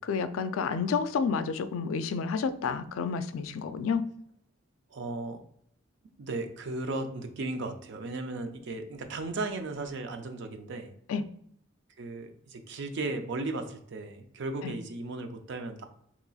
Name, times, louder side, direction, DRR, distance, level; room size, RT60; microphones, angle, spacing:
voice 1, 0.0-4.1 11.1-11.2 14.6-14.7, left 5 dB, 90° left, 0.3 m, -30 dB
voice 2, 4.9-5.4 6.2-10.9 12.0-15.9, right 2 dB, 65° right, 0.5 m, -36 dB
3.9 x 2.9 x 2.3 m
head